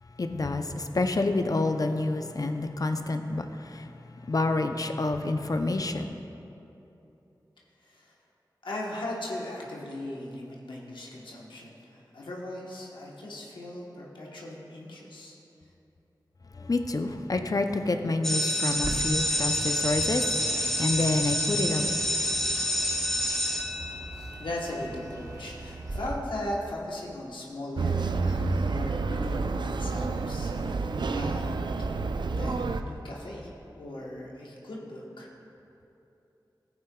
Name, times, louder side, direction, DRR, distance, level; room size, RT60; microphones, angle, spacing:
voice 1, 0.2-3.4 3.7-3.8 4.3-6.1 16.7-22.0, left 2 dB, 50° left, 6 dB, 0.6 m, -28 dB
voice 2, 8.6-15.4 24.4-31.6 32.3-35.3, left 1 dB, 90° left, -3 dB, 1.2 m, -38 dB
sound 1, 18.2-24.4, equal, 5° left, 0.8 m, -28 dB
Bird, 18.7-26.1, right 1 dB, 45° right, 0.9 m, -41 dB
sound 2, 27.8-32.8, right 4 dB, 75° right, 0.4 m, -29 dB
14.0 x 8.7 x 2.3 m, 2.9 s
cardioid pair, 45°, 8 cm